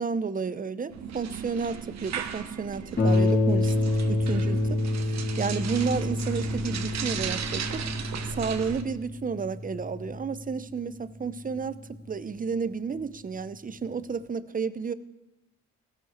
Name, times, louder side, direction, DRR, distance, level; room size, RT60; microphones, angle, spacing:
voice 1, 0.0-7.9 8.3-14.9, right 5 dB, 30° right, 15 dB, 0.8 m, -32 dB
sound 1, 0.9-8.8, right 7 dB, 60° right, 1.3 m, -36 dB
Harp, 3.0-12.1 13.0-13.1 13.6-13.7, left 2 dB, 35° left, 2.5 m, -28 dB
16.0 x 13.0 x 4.5 m, 0.98 s
cardioid pair, 90°, 30 cm